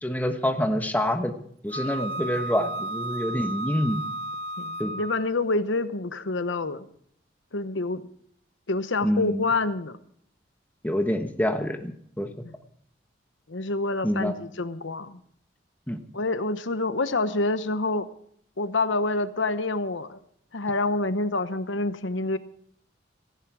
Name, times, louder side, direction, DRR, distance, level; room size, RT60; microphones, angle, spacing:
voice 1, 0.0-1.3 1.6-4.0 4.8-4.9 9.0-9.4 10.8-12.3 14.0-14.3 15.9-16.0, equal, 10° left, 6 dB, 1.2 m, -26 dB
Wind instrument woodwind instrument, 1.7-5.3, right 1 dB, 70° right, 1.3 m, -33 dB
voice 2, 4.6-6.9 7.5-8.0 8.7-10.0 12.4-12.5 13.5-15.2 16.1-18.1 18.6-20.2 20.5-22.4, left 2 dB, 85° left, 11 dB, 1.0 m, -27 dB
17.0 x 14.5 x 4.8 m, 0.64 s
head